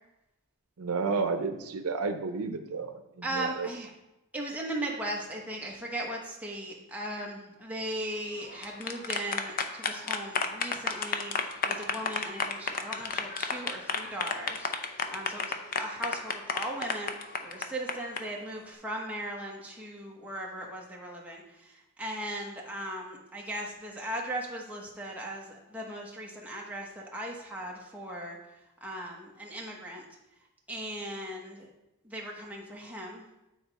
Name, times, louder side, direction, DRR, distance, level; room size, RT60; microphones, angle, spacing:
voice 1, 0.8-3.7, right 4 dB, 90° right, 8 dB, 0.6 m, -31 dB
voice 2, 3.2-3.9 4.3-28.4 28.8-30.0 30.7-31.7 32.0-33.2, right 1 dB, 5° right, -2 dB, 1.1 m, -38 dB
sound 1, 8.4-18.2, left 5 dB, 40° left, 0.6 m, -31 dB
9.2 x 4.3 x 4.0 m, 0.93 s
head